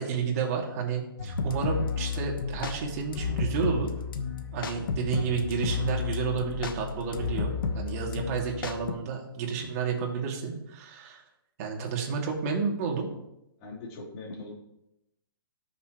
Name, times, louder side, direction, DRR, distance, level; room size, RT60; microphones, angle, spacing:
voice 1, 0.0-3.9 4.5-11.2 11.6-13.1, right 6 dB, 40° right, 0 dB, 2.6 m, -31 dB
sound 1, 1.2-8.9, left 5 dB, 65° left, 1.4 m, -32 dB
voice 2, 13.6-14.5, left 2 dB, 35° left, -4 dB, 4.0 m, -40 dB
17.0 x 6.8 x 3.1 m, 0.85 s
hypercardioid pair, 145°, 12 cm